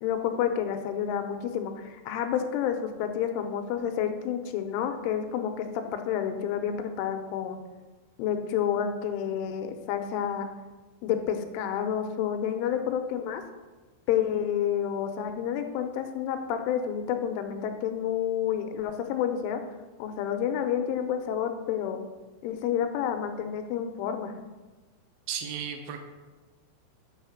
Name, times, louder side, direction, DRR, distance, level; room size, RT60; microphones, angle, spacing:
voice 1, 0.0-7.6 8.2-10.5 11.0-13.4 14.1-19.6 20.0-22.0 22.4-24.3, left 9 dB, 85° left, 6 dB, 3.2 m, -29 dB
voice 2, 25.3-26.0, right 8 dB, 80° right, 5 dB, 2.9 m, -34 dB
7.9 x 5.7 x 6.9 m, 1.2 s
omnidirectional pair, 5.6 m